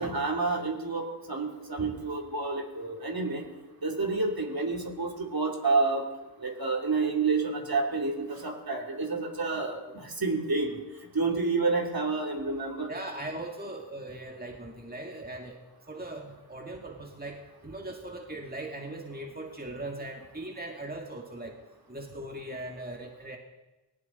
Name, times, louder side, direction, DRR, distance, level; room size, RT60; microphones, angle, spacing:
voice 1, 0.0-3.5 3.8-6.1 6.4-10.7 11.1-12.9, right 3 dB, 50° right, 1 dB, 3.3 m, -29 dB
voice 2, 12.9-15.6 15.9-21.6 21.9-23.4, right 1 dB, 20° right, 2 dB, 1.9 m, -39 dB
19.5 x 17.5 x 4.1 m, 1.1 s
cardioid pair, 40°, 46 cm